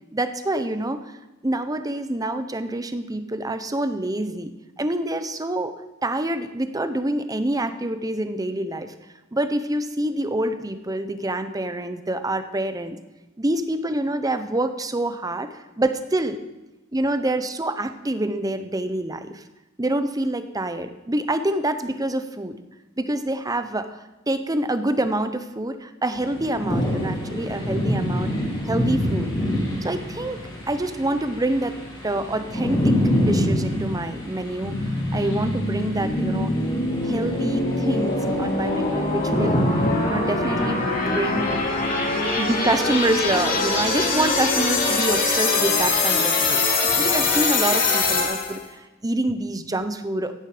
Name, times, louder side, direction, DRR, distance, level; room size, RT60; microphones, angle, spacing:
voice 1, 0.1-1.1 1.4-4.5 4.8-5.7 6.0-8.9 9.3-13.0 13.4-16.4 16.9-19.4 19.8-22.6 23.0-28.3 28.7-29.3 29.8-30.4 30.7-34.8 35.1-36.5 37.0-41.5 42.3-46.6 47.0-50.3, right 1 dB, 15° right, 9 dB, 0.8 m, -26 dB
sound 1, 26.1-45.0, equal, 20° left, 3.1 m, -28 dB
sound 2, 34.6-48.6, left 3 dB, 40° left, 2.7 m, -23 dB
15.5 x 10.5 x 5.1 m, 1.1 s
head